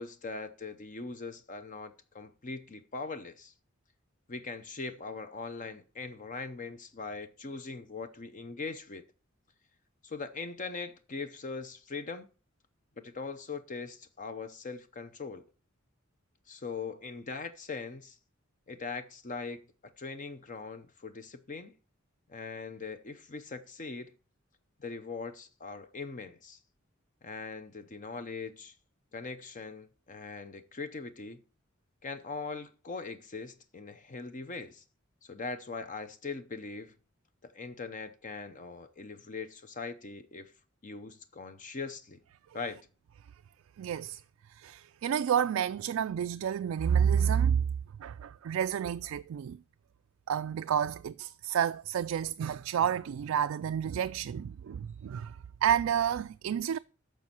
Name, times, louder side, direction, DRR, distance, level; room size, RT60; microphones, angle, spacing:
voice 1, 0.0-3.5 4.3-9.0 10.0-12.3 13.0-15.5 16.5-18.2 18.7-21.7 22.3-24.1 24.8-26.6 27.2-28.7 29.1-31.4 32.0-34.8 35.2-37.0 37.4-40.5 40.8-42.2 42.5-42.8, left 4 dB, 40° left, 0.7 m, -41 dB
voice 2, 43.8-44.2 44.6-47.6 48.0-49.6 50.3-55.3 55.6-56.8, right 8 dB, 85° right, 0.3 m, -29 dB
9.5 x 6.2 x 4.3 m
head